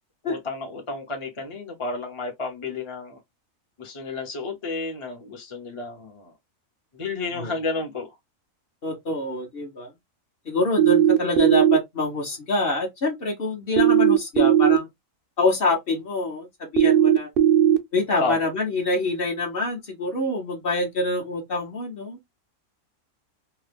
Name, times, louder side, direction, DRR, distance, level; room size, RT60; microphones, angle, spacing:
voice 1, 0.2-3.2 3.8-6.3 7.0-8.1 18.2-18.4, left 3 dB, 30° left, 0.7 m, -31 dB
voice 2, 8.8-9.9 10.5-14.9 15.4-17.3 17.9-22.2, left 2 dB, 50° left, 1.0 m, -26 dB
sound 1, 10.8-11.8 13.8-14.8 16.8-17.8, right 10 dB, 60° right, 0.6 m, -17 dB
2.9 x 2.2 x 3.3 m
omnidirectional pair, 1.4 m